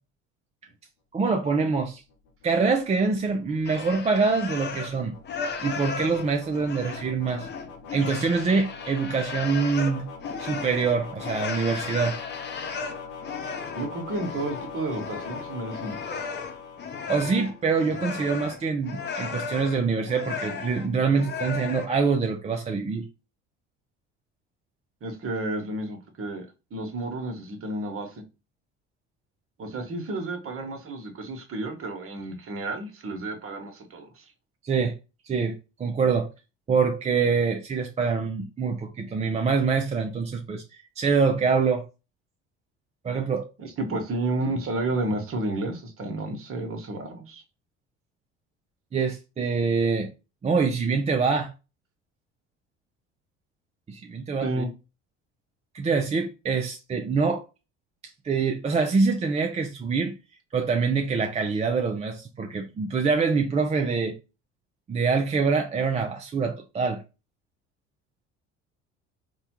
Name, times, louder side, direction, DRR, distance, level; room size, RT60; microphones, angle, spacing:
voice 1, 1.1-2.0 2.4-5.1 5.6-7.5 7.9-10.1 10.4-12.2 17.1-23.1 34.6-34.9 35.3-35.5 35.8-36.3 36.7-41.8 43.0-43.5 48.9-50.1 50.4-51.5 53.9-54.6 55.7-57.4 58.2-60.2 60.5-64.1 64.9-67.0, right 5 dB, 20° right, 0.4 m, -25 dB
sound 1, 1.9-17.8, left 5 dB, 70° left, 0.9 m, -43 dB
sound 2, 3.6-5.0 5.2-21.9, left 5 dB, 30° left, 0.6 m, -35 dB
voice 2, 13.8-16.3 25.0-26.4 26.7-28.2 29.6-34.2 43.6-47.4 54.4-54.7, right 2 dB, 40° right, 1.0 m, -31 dB
3.5 x 2.2 x 2.9 m
hypercardioid pair, 65°, 35 cm